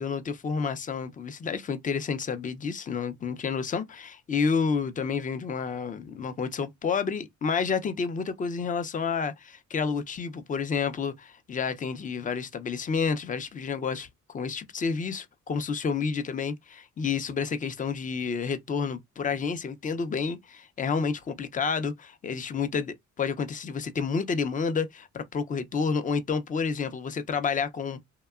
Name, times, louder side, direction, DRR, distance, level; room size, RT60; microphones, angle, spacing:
voice 1, 0.0-28.0, left 5 dB, 25° left, 0.4 m, -30 dB
2.8 x 2.2 x 2.3 m
cardioid pair, 90°, 30 cm